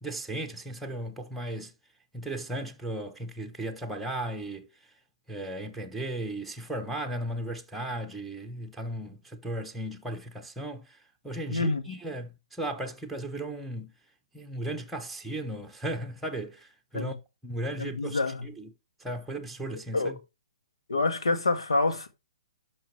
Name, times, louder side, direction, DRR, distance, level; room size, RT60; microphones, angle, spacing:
voice 1, 0.0-1.7 2.1-4.9 5.3-13.9 14.3-17.1 17.4-18.7 19.0-20.2, right 1 dB, ahead, 1.1 m, -36 dB
voice 2, 11.5-11.8 16.9-17.1 17.8-18.4 19.9-20.2 20.9-22.1, left 3 dB, 80° left, 1.8 m, -27 dB
12.0 x 5.5 x 3.3 m
hypercardioid pair, 130°, 3 cm